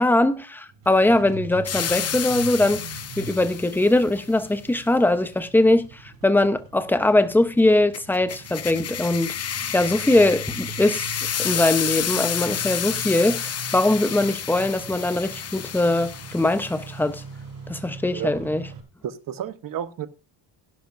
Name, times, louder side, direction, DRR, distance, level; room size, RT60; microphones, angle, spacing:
voice 1, 0.0-2.8 3.2-9.3 9.7-11.1 11.4-17.2 17.7-18.6, left 2 dB, 5° left, 0.9 m, -21 dB
Engine starting, 0.7-18.8, right 4 dB, 70° right, 4.9 m, -41 dB
sound 1, 1.7-4.0 7.9-16.9, left 9 dB, 35° left, 0.8 m, -30 dB
voice 2, 19.0-20.1, right 9 dB, 45° right, 1.2 m, -31 dB
16.5 x 11.5 x 2.6 m
cardioid pair, 135°, 45 cm